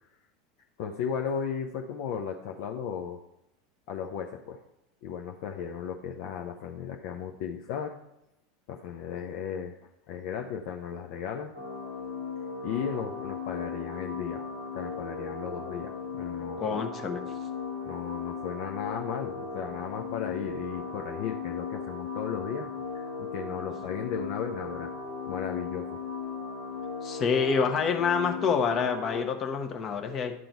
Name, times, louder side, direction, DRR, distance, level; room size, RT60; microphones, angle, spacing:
voice 1, 0.8-3.2 3.9-4.6 5.0-8.0 8.7-9.8 10.1-11.5 12.6-14.4 14.7-16.6 17.9-22.7 22.9-24.9 25.3-25.9, left 7 dB, 55° left, 3 dB, 0.6 m, -35 dB
sound 1, 11.5-29.2, left 5 dB, 90° left, 2.7 m, -37 dB
voice 2, 16.6-17.2 27.0-30.3, left 6 dB, 35° left, 5 dB, 1.0 m, -27 dB
11.0 x 3.8 x 4.5 m, 0.88 s
figure-of-eight pair, 80°, 0 cm